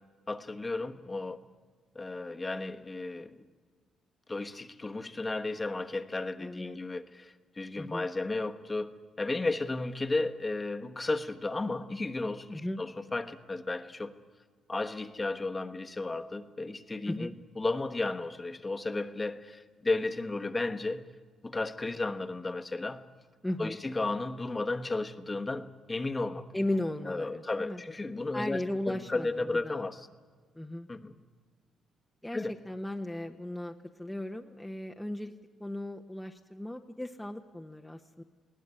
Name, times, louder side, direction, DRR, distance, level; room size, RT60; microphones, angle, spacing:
voice 1, 0.3-1.4 1.9-3.4 4.3-14.2 14.7-17.3 17.6-21.1 21.4-23.0 23.6-26.4 27.0-30.1 30.9-31.1 32.3-32.5, left 2 dB, 20° left, 7 dB, 1.2 m, -34 dB
voice 2, 6.4-6.8 7.8-8.1 12.5-12.8 17.1-17.3 23.4-23.8 26.5-27.8 28.3-29.8 30.5-30.9 32.2-35.3 35.6-38.2, left 1 dB, 5° left, 3 dB, 1.0 m, -36 dB
20.5 x 17.5 x 9.9 m, 1.5 s
cardioid pair, 90°, 0 cm